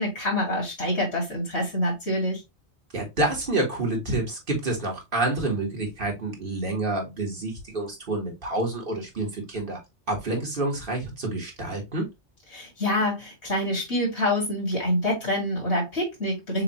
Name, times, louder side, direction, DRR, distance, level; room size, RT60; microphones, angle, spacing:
voice 1, 0.0-2.4 12.5-16.6, left 1 dB, 70° left, 2.7 m, -26 dB
voice 2, 2.9-9.8 10.1-12.1, right 2 dB, 50° right, 1.8 m, -28 dB
6.7 x 2.6 x 3.0 m
omnidirectional pair, 1.2 m